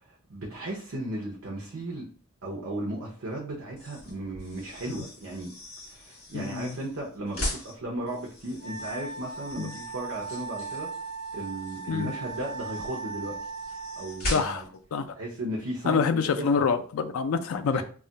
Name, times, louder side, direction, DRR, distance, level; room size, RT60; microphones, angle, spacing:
voice 1, 0.0-2.1 2.4-5.5 5.9-10.9 11.3-13.4 14.0-14.6 15.1-16.5 17.7-17.8, right 1 dB, 80° right, 0.7 m, -35 dB
sound 1, 3.7-14.8, left 1 dB, 50° left, 1.1 m, -40 dB
voice 2, 6.3-6.8 9.6-9.7 11.9-12.1 14.3-14.6 14.9-15.1 15.9-17.8, left 5 dB, 80° left, 0.3 m, -26 dB
Wind instrument woodwind instrument, 8.6-14.1, right 4 dB, 10° right, 0.8 m, -38 dB
2.4 x 2.1 x 3.8 m
head